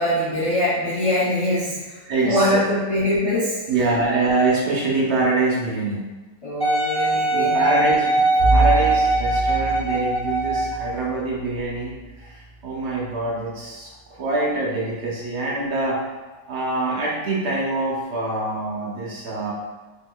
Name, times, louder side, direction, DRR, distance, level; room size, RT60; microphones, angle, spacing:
voice 1, 0.0-4.0 6.4-8.0 8.4-8.7, left 1 dB, 40° left, -9 dB, 0.5 m, -23 dB
voice 2, 2.1-2.6 3.7-6.1 7.3-12.0 12.3-16.0 16.5-19.5, right 2 dB, 65° right, -4 dB, 0.9 m, -24 dB
Wind instrument woodwind instrument, 6.6-10.9 11.6-11.7, right 2 dB, 5° left, 0.8 m, -21 dB
Bowed string instrument, 8.4-13.5, right 2 dB, 65° left, 1.1 m, -27 dB
3.7 x 2.7 x 2.2 m, 1.2 s
omnidirectional pair, 1.3 m